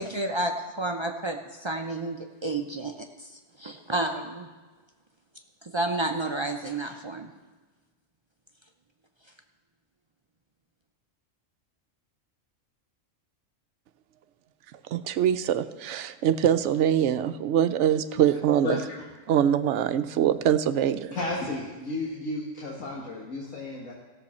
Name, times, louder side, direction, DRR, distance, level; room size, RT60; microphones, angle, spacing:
voice 1, 0.0-4.5 5.6-7.3, right 2 dB, 45° right, 3 dB, 0.4 m, -31 dB
voice 2, 14.9-18.8 19.3-21.2, right 10 dB, 70° right, 12 dB, 0.8 m, -23 dB
voice 3, 21.1-23.9, left 2 dB, 85° left, -4 dB, 1.9 m, -32 dB
17.0 x 7.1 x 4.3 m, 1.3 s
omnidirectional pair, 1.3 m